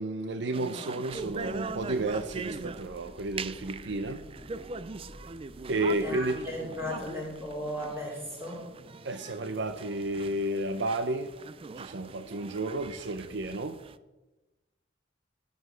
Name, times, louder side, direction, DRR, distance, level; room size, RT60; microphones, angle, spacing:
voice 1, 0.0-4.2 5.7-6.4 9.0-11.3 11.8-13.7, right 2 dB, 65° right, 9 dB, 0.7 m, -32 dB
sound 1, 0.5-14.0, right 4 dB, 30° right, 0.4 m, -41 dB
sound 2, 1.1-8.5, equal, 10° left, 2.3 m, -52 dB
voice 2, 5.7-8.7, left 1 dB, 15° right, -3 dB, 4.6 m, -37 dB
13.0 x 8.0 x 6.2 m, 1.1 s
head